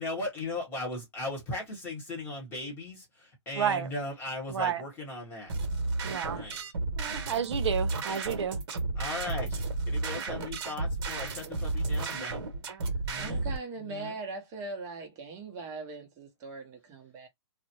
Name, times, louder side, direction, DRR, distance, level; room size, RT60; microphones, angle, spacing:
voice 1, 0.0-5.5 6.2-6.6 7.0-7.2 9.0-9.6 9.9-12.4 13.0-13.4 13.8-14.2, left 2 dB, 15° left, 1.1 m, -38 dB
voice 2, 3.5-3.9 4.5-4.8 6.0-6.4 7.0-8.6, right 8 dB, 70° right, 0.6 m, -31 dB
sound 1, 5.5-13.6, right 3 dB, 50° right, 1.0 m, -32 dB
voice 3, 13.2-17.3, right 3 dB, 20° right, 0.7 m, -40 dB
2.5 x 2.0 x 2.8 m
hypercardioid pair, 155°, 15 cm